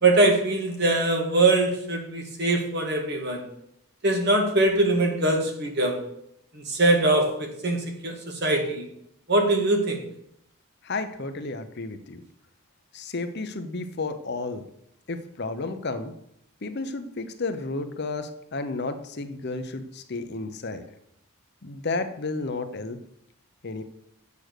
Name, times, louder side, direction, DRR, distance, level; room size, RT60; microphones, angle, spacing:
voice 1, 0.0-3.5 4.0-6.0 6.5-8.1 8.4-8.8 9.3-10.0, right 2 dB, 50° right, 2 dB, 1.8 m, -22 dB
voice 2, 10.8-12.2 12.9-14.6 15.1-16.1 16.6-20.8 21.6-23.0 23.6-23.8, left 3 dB, 50° left, 9 dB, 0.7 m, -32 dB
7.7 x 6.9 x 6.5 m, 0.75 s
head